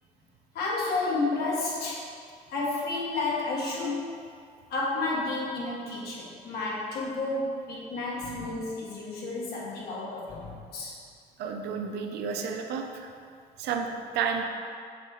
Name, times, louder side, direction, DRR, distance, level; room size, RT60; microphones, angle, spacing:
voice 1, 0.5-2.1 2.5-4.2 4.7-11.0, left 3 dB, 70° left, -4 dB, 1.7 m, -31 dB
voice 2, 11.4-13.1 13.6-14.4, right 6 dB, 80° right, 3 dB, 0.7 m, -31 dB
7.9 x 3.6 x 4.7 m, 2.2 s
cardioid pair, 110°, 17 cm